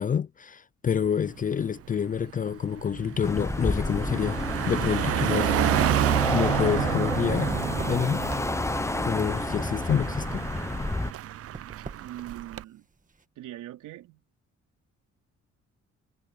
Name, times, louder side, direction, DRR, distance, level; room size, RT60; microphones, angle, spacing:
voice 1, 0.0-4.4 4.7-5.5 6.3-7.6 7.9-8.2 9.0-10.4, left 7 dB, 30° left, 0.3 m, -27 dB
Car passing by, 1.1-1.3 1.7-12.6, right 12 dB, 50° right, 0.5 m, -30 dB
sound 1, 3.2-11.1, left 2 dB, 10° left, 0.7 m, -30 dB
sound 2, 11.5-13.2, right 4 dB, 25° right, 1.6 m, -46 dB
voice 2, 11.9-12.9 13.4-14.2, right 13 dB, 85° right, 3.9 m, -41 dB
cardioid pair, 90°, 30 cm